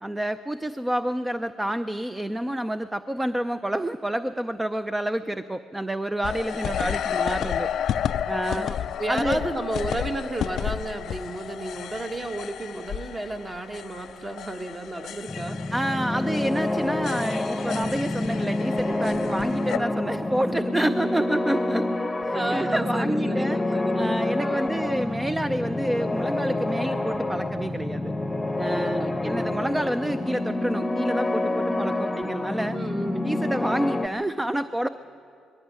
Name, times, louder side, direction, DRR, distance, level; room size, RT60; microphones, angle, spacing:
voice 1, 0.0-7.7 8.3-8.7 9.1-9.4 15.7-23.6 23.9-28.1 28.6-32.8 33.2-34.9, right 1 dB, 10° right, 10 dB, 0.5 m, -28 dB
sound 1, 6.2-19.8, left 9 dB, 70° left, 0.4 m, -32 dB
voice 2, 8.5-15.6 22.3-24.7 28.7-29.8 32.7-33.5, right 2 dB, 25° right, 4 dB, 1.5 m, -33 dB
sound 2, 15.3-34.1, left 2 dB, 10° left, 1.0 m, -28 dB
21.0 x 14.5 x 9.4 m, 2.5 s
cardioid pair, 90°, 0 cm